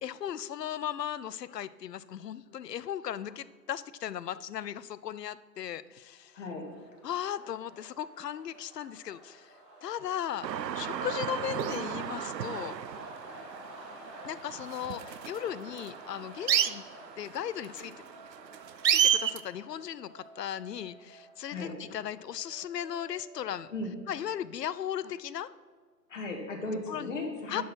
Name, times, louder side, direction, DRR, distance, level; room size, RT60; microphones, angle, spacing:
voice 1, 0.0-6.3 7.0-10.5 10.8-12.7 14.2-16.8 17.2-18.0 18.9-23.7 24.1-25.5 26.9-27.1 27.5-27.6, left 10 dB, 75° left, 17 dB, 0.6 m, -37 dB
sound 1, 6.0-22.6, equal, ahead, 0.7 m, -51 dB
voice 2, 6.3-6.7 21.5-21.7 23.7-24.0 26.1-27.6, left 2 dB, 50° left, 1 dB, 2.1 m, -36 dB
sound 2, 7.2-10.4 10.6-10.7 17.9-25.9, right 3 dB, 30° right, 1.9 m, -58 dB
sound 3, 10.4-19.4, right 9 dB, 80° right, 0.6 m, -31 dB
11.0 x 4.7 x 6.0 m, 1.5 s
figure-of-eight pair, 150°, 50 cm